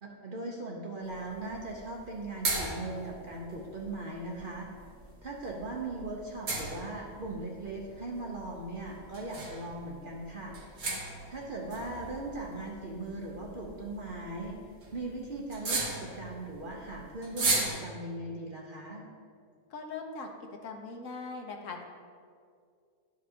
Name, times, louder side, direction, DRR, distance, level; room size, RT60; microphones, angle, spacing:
voice 1, 0.0-4.7 5.2-10.6 11.3-14.6 14.9-19.0, right 2 dB, 50° right, -2 dB, 0.7 m, -39 dB
sound 1, 1.0-17.7, right 3 dB, 80° right, 1.7 m, -38 dB
voice 2, 19.7-20.3 20.6-21.8, left 4 dB, 65° left, 2 dB, 1.0 m, -40 dB
11.0 x 5.1 x 2.8 m, 2.2 s
omnidirectional pair, 1.5 m